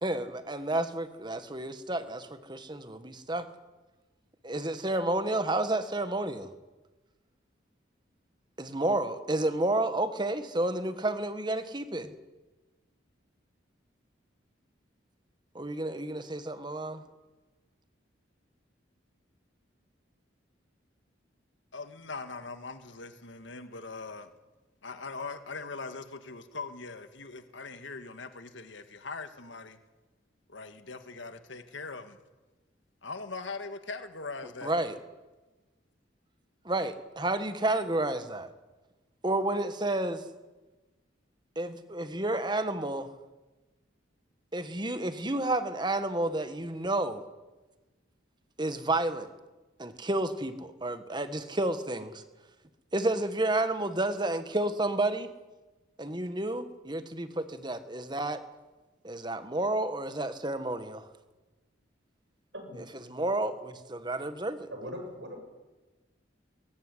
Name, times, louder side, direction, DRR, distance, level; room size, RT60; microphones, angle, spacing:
voice 1, 0.0-3.4 4.4-6.5 8.6-12.1 15.5-17.0 34.6-35.0 36.6-38.5 39.2-40.2 41.5-43.1 44.5-47.2 48.6-49.3 49.8-52.2 52.9-55.3 56.0-58.4 59.0-61.1 63.1-64.7, right 2 dB, 25° right, 1.6 m, -30 dB
voice 2, 21.7-24.3 24.8-29.8 30.5-32.2 33.0-34.7, left 4 dB, 75° left, 1.8 m, -41 dB
voice 3, 62.5-62.8 64.7-65.4, equal, 65° right, 7.3 m, -40 dB
21.5 x 18.5 x 9.9 m
head